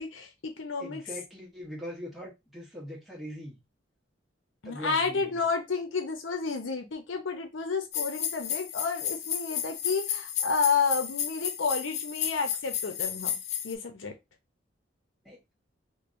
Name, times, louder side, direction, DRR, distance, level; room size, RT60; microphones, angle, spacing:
voice 1, 0.0-1.0 4.6-13.4 13.6-14.1, left 5 dB, 90° left, 0.7 m, -31 dB
voice 2, 0.8-3.6 4.6-5.4 15.2-15.4, equal, ahead, 1.5 m, -41 dB
sound 1, 7.9-13.7, left 9 dB, 35° left, 0.3 m, -33 dB
3.1 x 2.7 x 2.6 m
head